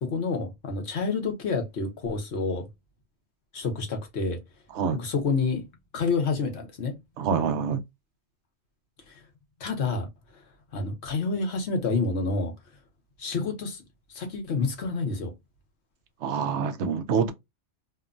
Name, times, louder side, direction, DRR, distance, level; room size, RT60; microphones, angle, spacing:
voice 1, 0.0-2.7 3.5-4.4 4.9-5.7 5.9-6.9 9.1-9.2 9.6-10.1 10.7-12.5 13.2-13.8 14.1-15.3, left 4 dB, 65° left, 1.1 m, -28 dB
voice 2, 7.2-7.8 16.2-17.3, right 6 dB, 70° right, 0.9 m, -26 dB
2.9 x 2.1 x 2.4 m
omnidirectional pair, 1.3 m